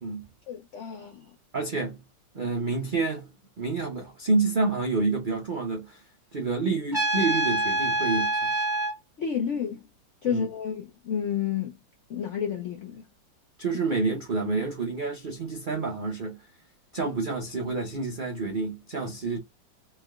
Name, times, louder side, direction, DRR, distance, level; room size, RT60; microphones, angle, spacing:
voice 1, 0.5-1.3 9.2-9.8 10.2-11.8 12.1-13.0, left 8 dB, 75° left, 0.6 m, -30 dB
voice 2, 1.5-2.0 2.3-3.3 3.6-6.0 6.3-8.5 10.3-10.5 13.6-16.4 16.9-19.4, right 3 dB, 65° right, 0.4 m, -28 dB
Trumpet, 6.9-8.9, right 2 dB, 15° left, 0.9 m, -26 dB
3.3 x 2.8 x 2.3 m
omnidirectional pair, 1.9 m